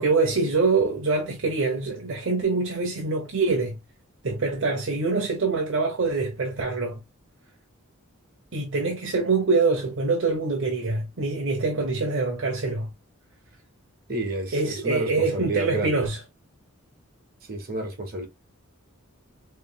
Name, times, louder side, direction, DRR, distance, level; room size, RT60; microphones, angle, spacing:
voice 1, 0.0-3.7 4.2-7.0 8.5-12.9 14.5-16.2, right 3 dB, 60° right, 1.0 m, -25 dB
voice 2, 14.1-16.1 17.5-18.3, right 2 dB, 45° right, 1.6 m, -30 dB
5.1 x 3.3 x 2.2 m
head